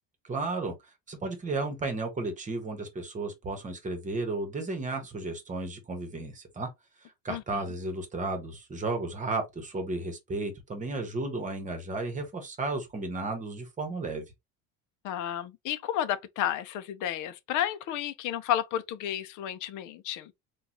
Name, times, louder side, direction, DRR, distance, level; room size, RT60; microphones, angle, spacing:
voice 1, 0.2-0.7 1.1-6.7 7.0-14.2, right 3 dB, 20° right, 1.1 m, -33 dB
voice 2, 7.3-7.6 15.0-20.3, left 11 dB, 55° left, 0.6 m, -32 dB
3.9 x 2.4 x 2.9 m
cardioid pair, 145°, 38 cm